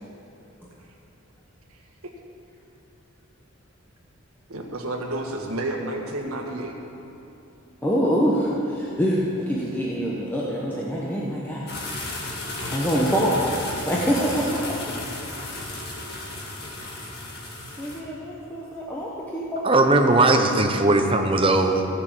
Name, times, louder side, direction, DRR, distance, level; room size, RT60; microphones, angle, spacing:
voice 1, 4.5-6.7 12.6-12.8 13.0-13.2, right 1 dB, 85° right, 1 dB, 1.6 m, -31 dB
voice 2, 7.8-11.7 12.7-13.5 13.8-14.9 17.8-20.2, equal, 10° left, -5 dB, 1.0 m, -25 dB
sound 1, 11.7-18.0, left 2 dB, 45° left, 1.9 m, -34 dB
voice 3, 19.6-21.9, right 2 dB, 25° right, 4 dB, 0.9 m, -19 dB
15.5 x 6.4 x 7.5 m, 2.9 s
head